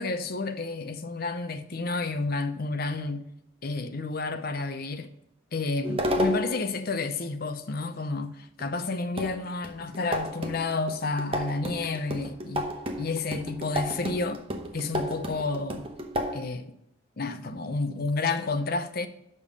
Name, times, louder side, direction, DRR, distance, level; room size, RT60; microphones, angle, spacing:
voice 1, 0.0-3.2 3.6-5.1 5.5-12.7 13.0-14.4 14.7-15.9 16.3-16.7 17.2-19.1, left 3 dB, 45° left, 0.6 m, -30 dB
sound 1, 5.8-6.7 8.6-8.7 9.2-16.4, equal, 25° right, 0.8 m, -31 dB
6.7 x 5.4 x 5.2 m
head